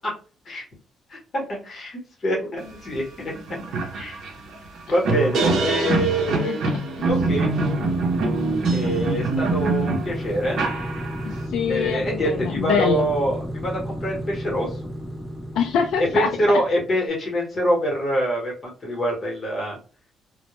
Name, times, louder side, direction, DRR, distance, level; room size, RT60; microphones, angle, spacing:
voice 1, 1.1-3.6 3.9-4.2 4.9-6.7 7.0-7.5 8.7-10.7 11.7-14.7 16.1-19.8, equal, 30° left, -2 dB, 0.9 m, -25 dB
sound 1, 2.9-3.0 3.4-11.4, right 3 dB, 65° right, 0.6 m, -24 dB
sound 2, 7.1-16.9, equal, 5° left, 0.3 m, -32 dB
voice 2, 11.2-13.0 15.5-16.3, left 7 dB, 80° left, 3 dB, 0.3 m, -24 dB
2.1 x 2.0 x 2.9 m, 0.37 s
cardioid pair, 175°, 0 cm